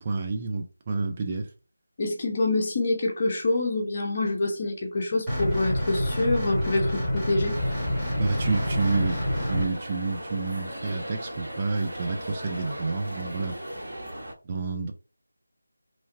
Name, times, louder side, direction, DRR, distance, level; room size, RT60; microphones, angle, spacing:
voice 1, 0.0-1.5 8.2-9.2 9.5-13.6 14.5-14.9, right 3 dB, 25° right, 0.4 m, -29 dB
voice 2, 2.0-7.6, left 2 dB, 35° left, 0.8 m, -26 dB
sound 1, 5.3-9.7, equal, ahead, 1.2 m, -27 dB
sound 2, 7.5-14.3, equal, 60° right, 1.3 m, -37 dB
3.0 x 2.3 x 2.7 m
figure-of-eight pair, 165°, 0 cm